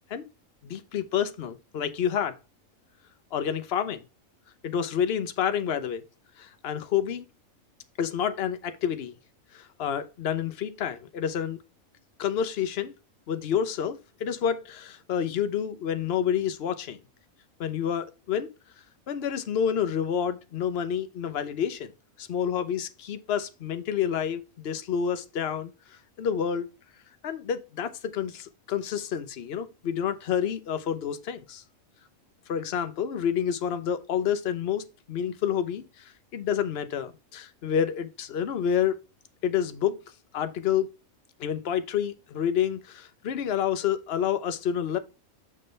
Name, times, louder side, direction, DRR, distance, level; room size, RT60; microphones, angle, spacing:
voice 1, 0.6-2.4 3.3-4.0 4.6-6.0 6.4-7.2 8.0-9.1 9.5-11.6 12.2-12.9 13.3-17.0 17.6-18.5 19.1-21.9 22.2-25.7 26.2-26.7 27.2-31.6 32.5-39.0 39.4-39.9 40.3-40.9 41.4-45.0, left 8 dB, 50° left, 0.9 m, -29 dB
6.5 x 6.5 x 3.3 m
omnidirectional pair, 1.4 m